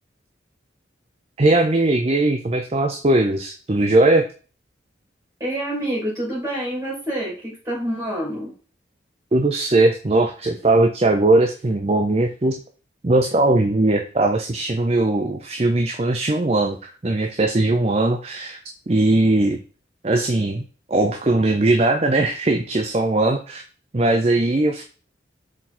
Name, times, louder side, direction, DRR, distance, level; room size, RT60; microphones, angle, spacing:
voice 1, 1.4-4.3 9.3-12.5 13.0-18.6 18.9-19.6 20.0-20.6 20.9-23.6 23.9-24.8, right 2 dB, 35° right, 5 dB, 0.5 m, -19 dB
voice 2, 5.4-8.5, right 1 dB, 20° right, -5 dB, 2.8 m, -27 dB
6.3 x 3.8 x 4.3 m, 0.38 s
head